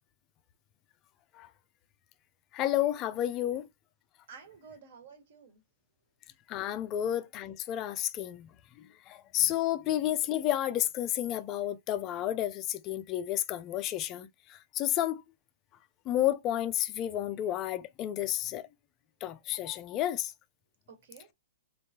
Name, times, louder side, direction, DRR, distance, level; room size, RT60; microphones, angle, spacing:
voice 1, 2.5-3.7 6.5-8.5 8.8-15.2 16.1-18.7 19.2-20.3, left 12 dB, 20° left, 0.4 m, -31 dB
voice 2, 4.3-5.6 20.9-21.3, right 6 dB, 50° right, 1.6 m, -52 dB
3.9 x 3.5 x 2.8 m
hypercardioid pair, 170°, 0 cm